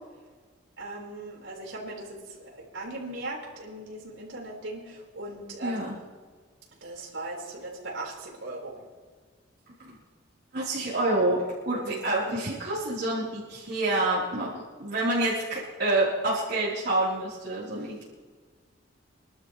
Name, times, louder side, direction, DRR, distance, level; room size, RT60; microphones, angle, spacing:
voice 1, 0.8-6.0 6.8-8.8 11.8-12.0 17.7-17.9, right 2 dB, 75° right, -3 dB, 4.9 m, -39 dB
voice 2, 5.6-5.9 9.8-10.0 10.5-14.5 14.8-18.0, right 2 dB, 60° right, -9 dB, 4.0 m, -27 dB
26.5 x 12.5 x 3.3 m, 1.5 s
head